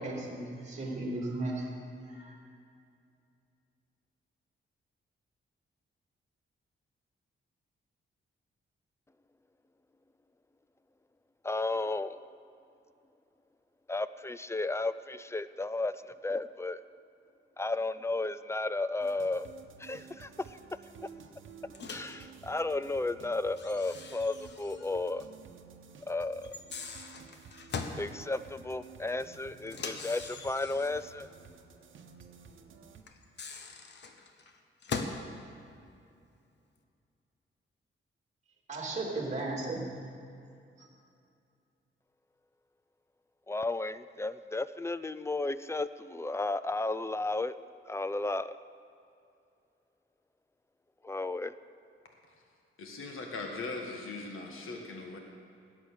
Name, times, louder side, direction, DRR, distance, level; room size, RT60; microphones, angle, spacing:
voice 1, 0.0-1.8 2.1-2.3 38.7-39.9 40.8-40.9, right 2 dB, 35° right, -2 dB, 3.0 m, -35 dB
voice 2, 11.4-12.2 13.9-16.8 17.6-19.5 19.8-20.6 21.9-25.3 26.1-26.5 28.0-31.3 43.5-47.5 47.9-48.6 51.0-51.5, left 2 dB, 15° left, 14 dB, 0.3 m, -33 dB
sound 1, 19.0-33.0, right 6 dB, 70° right, 1.1 m, -53 dB
Microwave oven, 21.7-22.2 23.6-24.9 25.2-25.3 26.4-28.0 29.7-31.1 33.1-35.3, left 4 dB, 60° left, 1.1 m, -41 dB
voice 3, 52.8-55.2, left 3 dB, 80° left, 2 dB, 1.5 m, -40 dB
17.0 x 9.0 x 6.5 m, 2.5 s
wide cardioid pair, 145°, 21 cm